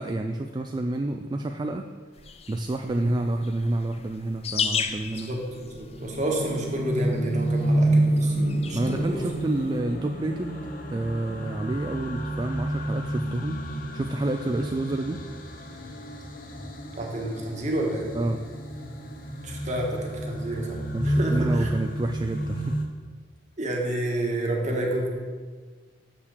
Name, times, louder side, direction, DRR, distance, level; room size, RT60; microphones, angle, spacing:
voice 1, 0.0-1.9 2.5-5.3 8.7-13.6 13.9-15.2 18.1-18.4 20.9-22.8, right 2 dB, 25° right, 5 dB, 0.3 m, -29 dB
sound 1, 2.1-9.8, left 6 dB, 35° left, 0.5 m, -36 dB
sound 2, 5.1-22.9, right 1 dB, 50° left, 0.9 m, -29 dB
voice 2, 5.1-9.2 14.6-14.7 17.0-18.1 19.4-21.7 23.6-25.1, right 1 dB, 40° right, 0 dB, 1.5 m, -30 dB
6.7 x 5.7 x 6.5 m, 1.5 s
head